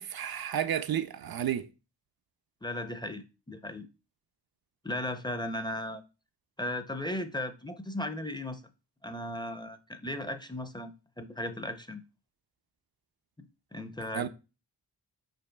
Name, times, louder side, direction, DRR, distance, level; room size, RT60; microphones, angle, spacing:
voice 1, 0.0-1.7 14.1-14.3, right 10 dB, 60° right, 0.5 m, -31 dB
voice 2, 2.6-3.9 4.8-6.0 6.6-8.6 9.0-12.0 13.4-14.3, left 1 dB, 10° left, 0.5 m, -36 dB
5.3 x 4.5 x 2.2 m
cardioid pair, 45°, 42 cm